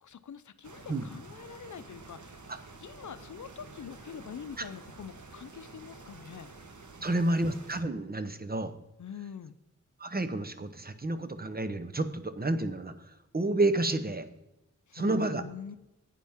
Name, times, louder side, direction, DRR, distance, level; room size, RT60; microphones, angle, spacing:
voice 1, 0.0-2.5 2.8-6.5 7.0-7.5 9.0-9.6 14.9-15.8, left 7 dB, 70° left, 13 dB, 0.6 m, -45 dB
sound 1, 0.6-7.8, right 3 dB, 70° right, 1.4 m, -50 dB
voice 2, 7.0-8.7 10.0-14.3 14.9-15.4, right 2 dB, 30° right, 10 dB, 0.9 m, -30 dB
11.5 x 9.2 x 3.6 m, 0.92 s
cardioid pair, 55°, 31 cm